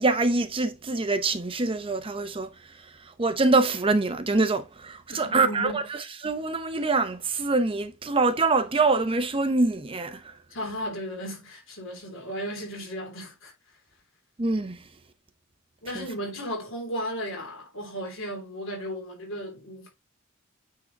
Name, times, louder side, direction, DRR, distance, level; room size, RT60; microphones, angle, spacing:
voice 1, 0.0-10.4 14.4-14.9 15.9-16.1, right 3 dB, 25° right, 0.7 m, -25 dB
voice 2, 5.1-5.8 10.5-13.5 15.8-19.9, equal, 65° left, 3.3 m, -35 dB
8.9 x 3.9 x 3.9 m
head